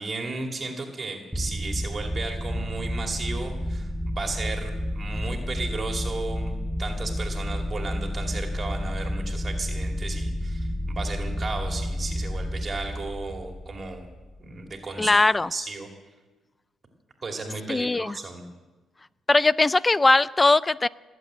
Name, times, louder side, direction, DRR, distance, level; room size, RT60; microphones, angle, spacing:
voice 1, 0.0-14.1 14.4-15.1 15.5-15.9 17.2-18.4, right 3 dB, 35° right, 3 dB, 2.5 m, -34 dB
sound 1, 1.3-14.6, equal, ahead, 0.8 m, -30 dB
voice 2, 15.0-15.5 17.7-18.2 19.3-20.9, left 2 dB, 20° left, 19 dB, 0.4 m, -20 dB
19.0 x 7.9 x 8.7 m, 1.2 s
cardioid pair, 90°, 0 cm